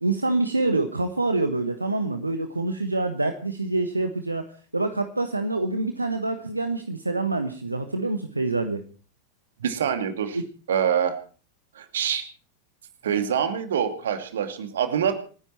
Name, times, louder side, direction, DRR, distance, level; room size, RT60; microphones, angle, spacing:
voice 1, 0.0-4.4 4.7-8.8 10.3-10.4, right 2 dB, 80° right, 8 dB, 1.2 m, -26 dB
voice 2, 9.6-10.4 10.7-11.2 11.8-12.2 13.0-15.1, right 8 dB, 60° right, 8 dB, 2.5 m, -25 dB
27.5 x 10.0 x 4.5 m, 0.39 s
figure-of-eight pair, 90°, 0 cm